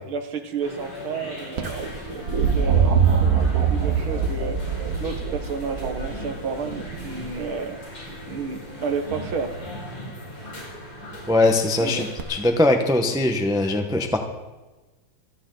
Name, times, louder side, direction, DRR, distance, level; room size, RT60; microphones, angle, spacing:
voice 1, 0.1-4.6 5.0-9.5 11.8-12.1, right 5 dB, 75° right, 6 dB, 2.2 m, -31 dB
sound 1, 0.6-12.4, equal, 85° left, 7.0 m, -38 dB
sound 2, 1.6-7.5 9.1-9.6 12.2-12.3, right 6 dB, 50° right, 1.4 m, -23 dB
voice 2, 11.3-14.2, left 2 dB, 5° right, 4 dB, 0.6 m, -21 dB
26.0 x 9.1 x 4.0 m, 1.1 s
omnidirectional pair, 2.3 m